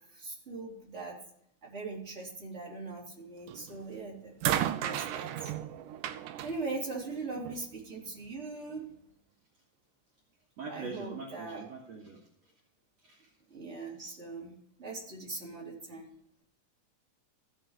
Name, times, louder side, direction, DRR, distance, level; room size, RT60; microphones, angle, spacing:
voice 1, 0.1-1.2 1.6-5.5 6.4-8.9 10.7-11.6 13.5-14.5 14.8-16.1, right 3 dB, 20° right, -4 dB, 3.7 m, -40 dB
sound 1, 3.5-3.8 4.4-7.7 8.7-8.8, right 12 dB, 85° right, 2.3 m, -34 dB
voice 2, 10.6-12.5 13.0-13.3, right 4 dB, 55° right, -3 dB, 2.9 m, -43 dB
16.0 x 5.8 x 4.9 m, 0.71 s
omnidirectional pair, 3.7 m